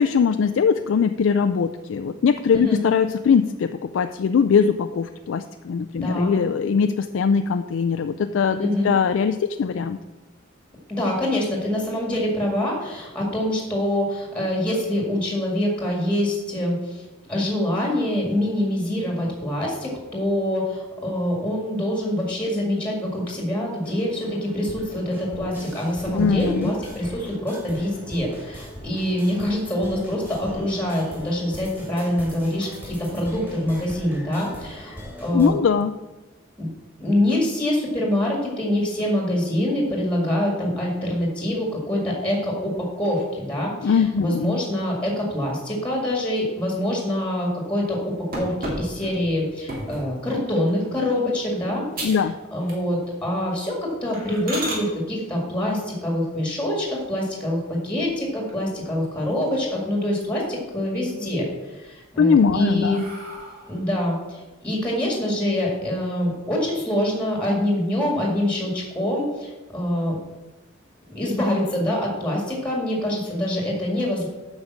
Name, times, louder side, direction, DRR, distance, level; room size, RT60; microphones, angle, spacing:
voice 1, 0.0-10.0 26.1-26.7 35.3-35.9 43.8-44.6 52.0-52.3 62.2-63.0, left 6 dB, 80° left, 8 dB, 0.4 m, -21 dB
voice 2, 6.0-6.4 8.6-8.9 10.9-35.6 36.6-36.7 37.0-52.2 52.5-63.0 63.7-70.2 71.1-74.3, left 1 dB, 5° left, -2 dB, 2.0 m, -25 dB
sound 1, 23.8-35.5, equal, 10° right, 3.2 m, -40 dB
sound 2, 48.3-50.1 50.7-51.0 51.4-51.5 51.9-52.3 52.6-53.1 53.5-53.6 54.1-54.8 56.8-57.5 58.0-58.1 58.5-58.6 58.9-59.7 60.0-60.6 61.0-61.7 62.2-63.9, right 1 dB, 45° right, 2.5 m, -35 dB
8.5 x 5.2 x 7.3 m, 1.2 s
head